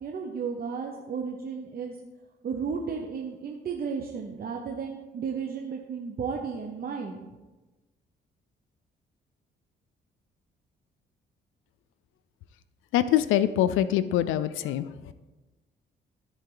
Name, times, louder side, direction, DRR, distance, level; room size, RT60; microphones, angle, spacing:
voice 1, 0.0-2.0 2.4-7.2, right 6 dB, 50° right, 1 dB, 0.9 m, -33 dB
voice 2, 12.9-14.8, left 12 dB, 90° left, 13 dB, 0.4 m, -24 dB
13.5 x 4.6 x 3.9 m, 1.2 s
cardioid pair, 90°, 20 cm